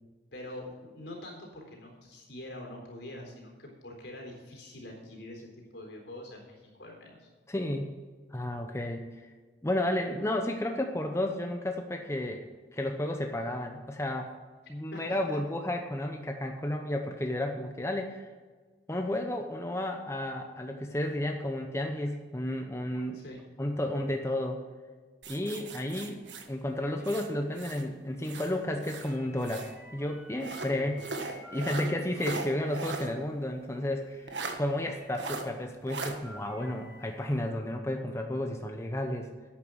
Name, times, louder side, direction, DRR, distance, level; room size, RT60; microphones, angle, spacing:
voice 1, 0.3-7.3 14.9-15.4 23.1-23.4 30.7-30.9, left 1 dB, 75° left, 1 dB, 3.9 m, -45 dB
voice 2, 7.5-7.9 8.3-9.1 9.6-12.4 12.7-14.3 14.7-18.2 18.9-23.2 23.6-24.6 25.3-29.7 29.9-31.0 31.5-39.3, left 1 dB, 15° left, 4 dB, 0.8 m, -32 dB
sound 1, 22.1-22.2 22.5-22.6 22.9-23.4 23.9-24.2 24.6-24.7 26.3-26.4 26.8-27.1 27.5-27.6 29.0-31.9 32.4-32.7 33.5-33.6 33.8-33.9 35.0-35.4 35.9-37.1, left 1 dB, 10° right, 1.4 m, -52 dB
sound 2, 25.2-27.9 28.2-29.8 30.4-33.1 33.5-33.6 34.3-34.6 35.1-35.4 35.9-36.1, right 3 dB, 85° right, 1.5 m, -39 dB
11.0 x 8.9 x 6.3 m, 1.4 s
head